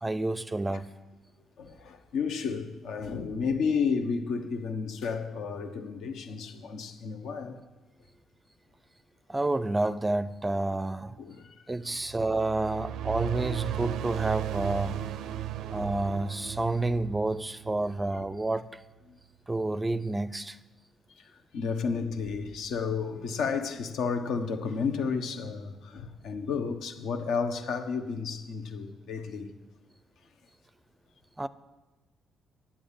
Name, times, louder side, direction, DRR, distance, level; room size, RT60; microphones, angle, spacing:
voice 1, 0.0-0.9 9.3-11.2 11.7-15.0 15.7-18.7 19.5-20.6 31.4-31.5, right 2 dB, 15° right, 0.4 m, -29 dB
voice 2, 1.6-7.6 11.2-11.5 11.8-12.0 19.1-19.2 21.5-29.5, left 5 dB, 80° left, 1.2 m, -32 dB
sound 1, 12.0-18.6, right 13 dB, 85° right, 0.4 m, -36 dB
9.3 x 7.2 x 8.8 m
cardioid pair, 90°, 0 cm